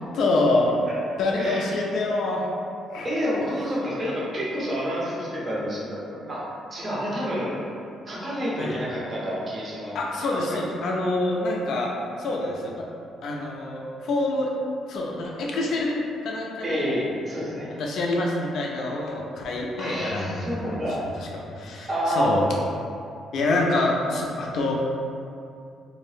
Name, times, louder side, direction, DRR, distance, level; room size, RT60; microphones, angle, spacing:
voice 1, 0.1-0.7 1.2-2.5 2.9-3.1 8.6-8.8 9.9-11.9 12.2-12.8 13.2-14.5 14.9-16.9 17.8-20.8 21.6-22.4 23.3-24.7, left 2 dB, 55° left, -1 dB, 0.4 m, -26 dB
voice 2, 3.0-6.4 6.7-7.5 8.1-10.7 16.6-17.7 19.8-21.0 21.9-22.3, equal, 25° right, -6 dB, 0.6 m, -29 dB
2.6 x 2.1 x 3.1 m, 2.5 s
cardioid pair, 170°, 0 cm